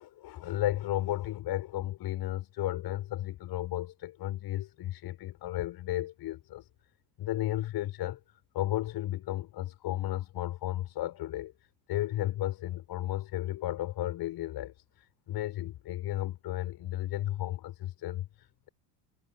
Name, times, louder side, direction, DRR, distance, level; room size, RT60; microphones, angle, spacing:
voice 1, 0.0-6.7 7.2-8.2 8.5-11.5 11.9-18.7, left 14 dB, 50° left, 6.3 m, -34 dB
hypercardioid pair, 75°, 46 cm